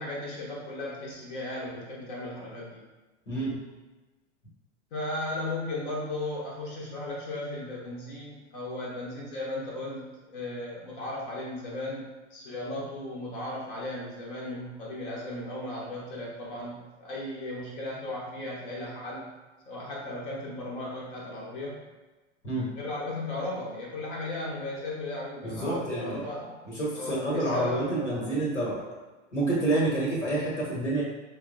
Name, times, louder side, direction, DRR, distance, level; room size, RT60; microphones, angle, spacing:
voice 1, 0.0-2.8 4.9-19.2 19.7-21.8 22.8-26.6 26.9-28.4, left 1 dB, 45° left, -4 dB, 0.8 m, -36 dB
voice 2, 25.4-26.2 26.7-28.8 29.3-31.0, right 2 dB, 80° left, -4 dB, 1.0 m, -28 dB
4.2 x 2.0 x 2.5 m, 1.2 s
figure-of-eight pair, 90°, 36 cm